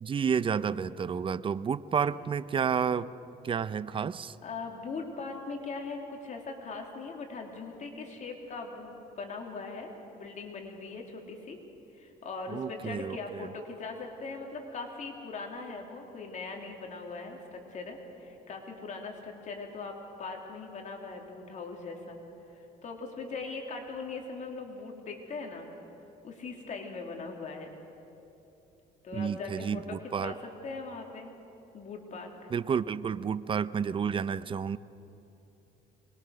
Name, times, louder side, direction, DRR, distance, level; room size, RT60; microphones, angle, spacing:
voice 1, 0.0-3.1 3.4-4.4 12.5-13.5 29.1-30.3 32.5-34.8, right 7 dB, 30° right, 16 dB, 0.6 m, -30 dB
voice 2, 4.4-11.6 11.9-22.2 22.8-25.7 26.2-27.8 29.0-31.3 31.7-32.5, left 3 dB, 45° left, 2 dB, 3.0 m, -40 dB
24.0 x 21.5 x 6.5 m, 3.0 s
cardioid pair, 110°, 17 cm